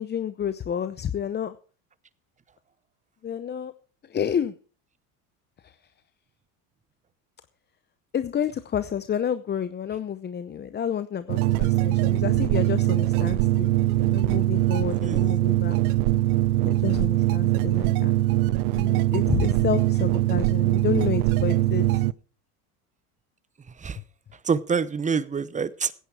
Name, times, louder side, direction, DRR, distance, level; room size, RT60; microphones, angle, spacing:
voice 1, 0.0-1.6 3.2-3.7 4.0-4.6 5.6-5.8 8.1-15.8 16.6-18.2 18.7-22.0, left 8 dB, 25° left, 13 dB, 0.7 m, -30 dB
sound 1, 11.3-22.1, right 16 dB, 90° right, 0.7 m, -22 dB
voice 2, 23.7-24.0 24.3-25.9, right 5 dB, 15° right, 18 dB, 0.8 m, -27 dB
16.0 x 10.0 x 4.7 m, 0.39 s
supercardioid pair, 105°, 42 cm